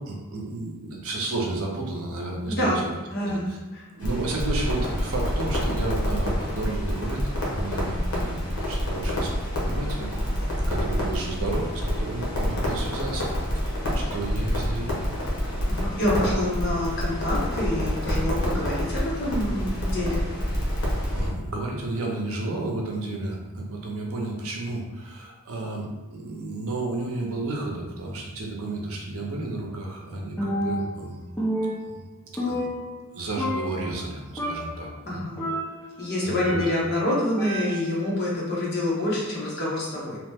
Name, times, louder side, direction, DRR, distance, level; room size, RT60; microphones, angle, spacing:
voice 1, 0.0-2.9 3.2-3.6 3.9-13.3 13.5-15.0 21.1-31.2 31.8-32.0 32.4-32.7 33.1-35.2 36.2-36.7, right 2 dB, 75° right, -1 dB, 0.6 m, -32 dB
voice 2, 2.5-2.8 3.1-3.8 15.7-20.2 35.1-35.4 36.0-40.2, left 1 dB, 50° left, -6 dB, 0.9 m, -27 dB
Crackle, 4.0-21.3, equal, 80° left, 0.9 m, -27 dB
Percussion, 30.4-31.1 31.4-33.1 33.4-34.1 34.4-34.9 35.4-37.0 37.4-38.0, equal, 10° left, 0.5 m, -30 dB
2.9 x 2.1 x 3.4 m, 1.1 s
head